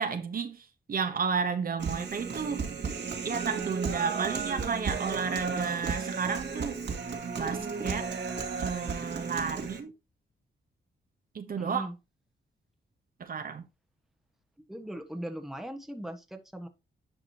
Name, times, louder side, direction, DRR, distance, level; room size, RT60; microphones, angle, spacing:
voice 1, 0.0-2.7 3.2-6.8 7.4-8.1 8.6-9.9 11.3-11.9 13.2-13.7, right 6 dB, 50° right, 1.0 m, -32 dB
Human voice, 1.8-9.8, right 5 dB, 65° right, 2.0 m, -34 dB
voice 2, 11.6-11.9 14.7-16.7, right 1 dB, ahead, 1.3 m, -39 dB
10.5 x 4.9 x 2.9 m
cardioid pair, 95°, 19 cm